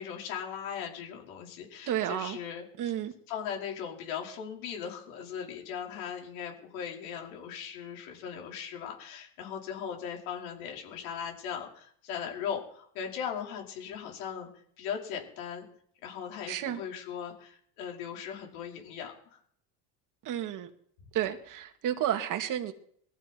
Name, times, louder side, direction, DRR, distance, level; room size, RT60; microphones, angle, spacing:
voice 1, 0.0-3.0 3.3-14.5 14.8-15.6 16.0-19.4, left 8 dB, 85° left, 5.1 m, -38 dB
voice 2, 1.9-2.4 2.8-3.1 16.5-16.8 20.3-20.7 21.1-22.7, right 11 dB, 50° right, 2.2 m, -31 dB
21.0 x 14.5 x 4.6 m
supercardioid pair, 120°, 41 cm